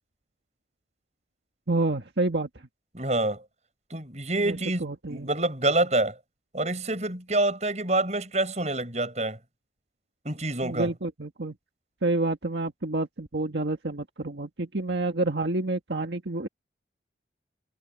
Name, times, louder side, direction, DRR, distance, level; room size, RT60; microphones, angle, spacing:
voice 1, 1.7-2.5 4.4-5.3 10.6-11.5 12.0-16.5, right 2 dB, 80° right, 1.7 m, -28 dB
voice 2, 2.9-3.4 3.9-6.2 6.5-9.4 10.2-10.9, right 2 dB, 40° right, 7.6 m, -27 dB
head